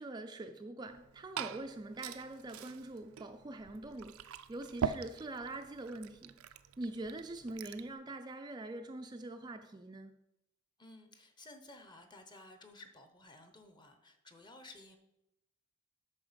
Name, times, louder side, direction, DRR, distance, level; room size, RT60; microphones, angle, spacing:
voice 1, 0.0-6.4 6.8-10.2, right 2 dB, 20° right, 0.4 m, -44 dB
Glass / Fill (with liquid), 0.9-7.9, right 6 dB, 85° right, 0.5 m, -43 dB
voice 2, 10.8-15.0, left 2 dB, 20° left, 0.9 m, -55 dB
8.6 x 6.2 x 5.1 m
head